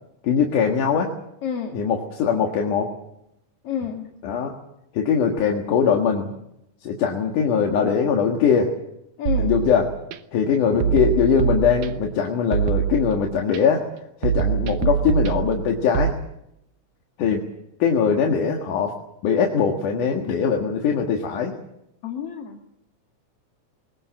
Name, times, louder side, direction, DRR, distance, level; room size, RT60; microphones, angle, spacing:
voice 1, 0.2-1.1 1.7-2.9 4.2-4.5 4.9-6.3 6.8-8.7 9.4-9.9 10.3-13.9 14.2-16.1 17.2-17.4 17.8-18.9 19.2-21.6, left 6 dB, 80° left, 1 dB, 3.2 m, -21 dB
voice 2, 1.4-1.8 3.6-4.1 9.2-9.5 22.0-22.7, left 8 dB, 50° left, 3 dB, 2.6 m, -29 dB
sound 1, 9.3-10.2 10.8-12.2 12.5-13.6 14.2-16.1, right 9 dB, 75° right, 2.6 m, -24 dB
21.5 x 20.0 x 7.7 m, 0.82 s
omnidirectional pair, 3.6 m